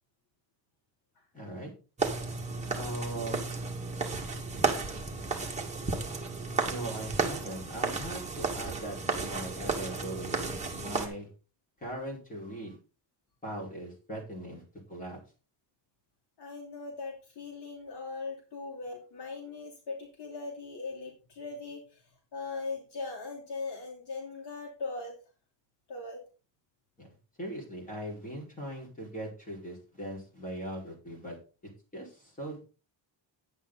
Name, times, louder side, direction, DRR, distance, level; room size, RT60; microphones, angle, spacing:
voice 1, 1.3-1.7 2.7-3.4 6.7-11.3 11.8-12.8 13.4-14.6 14.9-15.2 27.0-27.1 27.4-31.4 31.9-32.6, right 1 dB, 20° left, -2 dB, 4.9 m, -40 dB
sound 1, 2.0-11.1, right 4 dB, 15° right, 1.9 m, -33 dB
voice 2, 16.4-22.0 22.3-25.2 25.9-26.2, left 3 dB, 60° left, -1 dB, 3.1 m, -39 dB
10.5 x 8.5 x 4.1 m, 0.35 s
cardioid pair, 170°, 45 cm